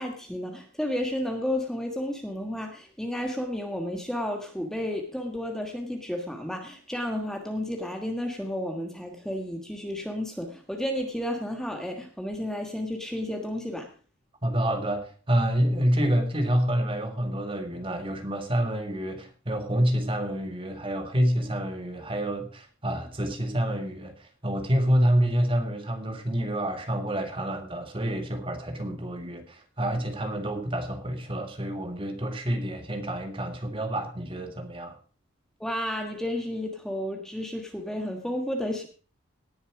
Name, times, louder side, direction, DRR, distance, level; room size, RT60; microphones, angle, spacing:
voice 1, 0.0-13.9 35.6-38.9, left 1 dB, 5° left, 3 dB, 1.4 m, -32 dB
voice 2, 14.4-35.0, equal, 25° right, 5 dB, 1.8 m, -28 dB
18.0 x 7.2 x 4.8 m, 0.39 s
head